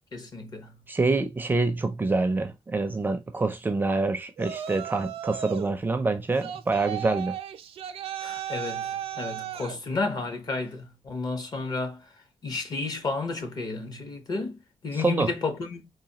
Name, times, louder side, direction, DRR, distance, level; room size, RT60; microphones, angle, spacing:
voice 1, 0.1-0.7 8.2-12.1 12.4-15.9, left 3 dB, 45° left, 0.9 m, -32 dB
voice 2, 0.9-7.4 14.9-15.3, right 3 dB, 20° right, 0.4 m, -26 dB
Yell, 4.4-5.7 6.4-9.8, right 10 dB, 90° right, 0.5 m, -35 dB
4.0 x 2.6 x 2.8 m
wide cardioid pair, 150°, 10 cm